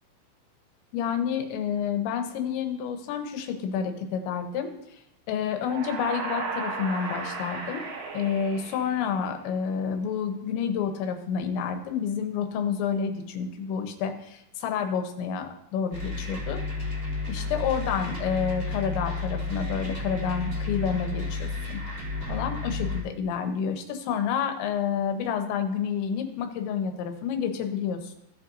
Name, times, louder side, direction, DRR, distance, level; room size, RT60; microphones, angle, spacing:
voice 1, 0.9-5.0 5.3-7.9 8.1-16.6 17.3-21.8 22.3-28.2, left 7 dB, 75° left, 6 dB, 3.1 m, -29 dB
sound 1, 5.6-9.4, right 4 dB, 90° right, 4.4 m, -35 dB
sound 2, 15.9-23.0, left 3 dB, 15° right, 2.3 m, -32 dB
16.5 x 7.6 x 2.7 m, 0.79 s
omnidirectional pair, 5.5 m